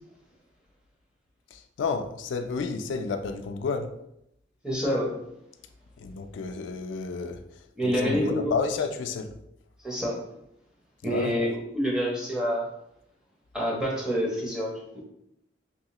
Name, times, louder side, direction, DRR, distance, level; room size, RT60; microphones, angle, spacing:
voice 1, 1.5-3.9 6.0-9.3 11.0-11.4, left 5 dB, 80° left, 6 dB, 0.3 m, -31 dB
voice 2, 4.6-5.1 7.8-8.5 9.8-10.2 11.0-12.7 13.5-14.8, equal, 5° right, -3 dB, 0.7 m, -27 dB
3.0 x 2.8 x 2.9 m, 0.79 s
head